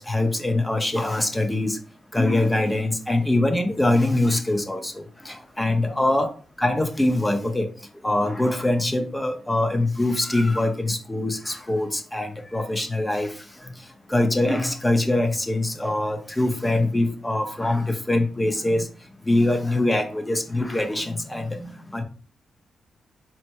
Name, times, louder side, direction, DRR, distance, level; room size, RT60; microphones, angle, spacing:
voice 1, 0.0-1.8 2.1-6.3 6.6-7.7 8.0-13.3 14.1-18.9 19.3-22.0, left 2 dB, 10° left, 5 dB, 0.7 m, -23 dB
4.2 x 2.1 x 4.5 m, 0.37 s
wide cardioid pair, 130°, 0 cm